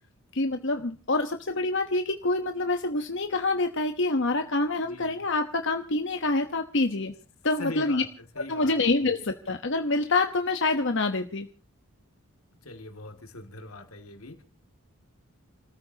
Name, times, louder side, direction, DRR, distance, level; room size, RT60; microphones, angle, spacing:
voice 1, 0.3-7.1 7.4-8.0 8.5-11.5, left 2 dB, 60° left, 6 dB, 1.1 m, -26 dB
voice 2, 4.8-5.2 7.6-8.7 9.0-9.1 12.6-14.4, left 2 dB, 85° left, 6 dB, 2.5 m, -42 dB
29.5 x 14.0 x 2.9 m, 0.34 s
head